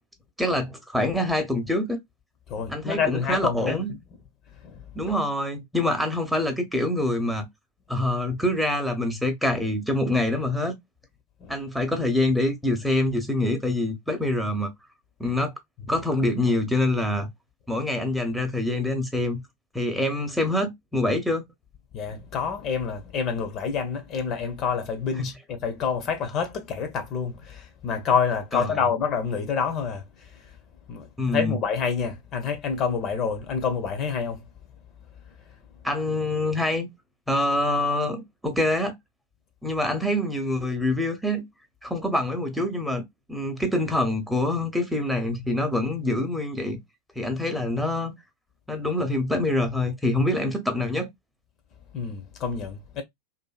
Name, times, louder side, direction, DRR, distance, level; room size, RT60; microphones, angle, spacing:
voice 1, 0.4-2.0 2.7-3.9 4.9-7.5 7.9-10.8 11.5-14.7 15.2-15.5 15.9-17.3 17.7-19.4 19.7-21.4 25.2-25.3 28.5-28.7 31.2-31.6 35.8-36.9 37.3-38.9 39.6-41.4 41.8-43.0 43.3-46.8 47.2-48.1 48.7-51.1, left 1 dB, ahead, 0.8 m, -25 dB
voice 2, 2.5-3.8 4.6-4.8 11.4-11.6 21.9-30.5 30.9-34.5 35.5-35.6 51.9-53.0, left 6 dB, 40° left, 0.7 m, -28 dB
2.6 x 2.6 x 2.3 m
hypercardioid pair, 90°, 0 cm